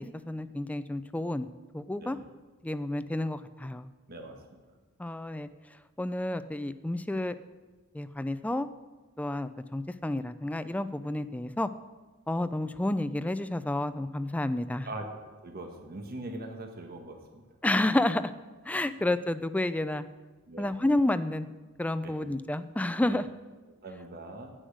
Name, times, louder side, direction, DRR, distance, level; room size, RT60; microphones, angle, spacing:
voice 1, 0.0-1.5 1.7-2.2 2.6-3.9 5.0-5.5 6.0-7.4 7.9-8.7 9.2-11.7 12.3-14.9 17.6-18.3 18.7-20.0 20.6-21.5 21.8-23.3, left 1 dB, 5° left, 12 dB, 0.3 m, -30 dB
voice 2, 4.1-4.6 14.8-15.1 15.4-17.4 20.5-20.7 22.0-22.2 23.1-23.2 23.8-24.5, right 2 dB, 45° right, 4 dB, 1.3 m, -41 dB
10.0 x 7.8 x 6.4 m, 1.3 s
head